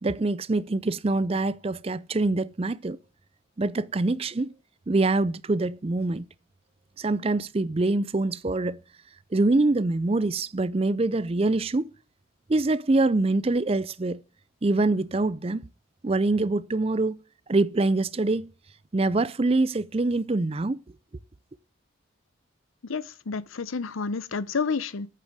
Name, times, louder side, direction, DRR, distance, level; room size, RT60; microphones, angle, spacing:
voice 1, 0.0-3.0 3.6-4.5 4.9-6.3 7.0-8.8 9.3-11.9 12.5-14.2 14.6-15.7 16.0-17.2 17.5-18.5 18.9-20.8, right 2 dB, 30° right, 0.5 m, -24 dB
voice 2, 22.8-25.1, left 4 dB, 80° left, 0.7 m, -30 dB
8.7 x 6.7 x 4.8 m
head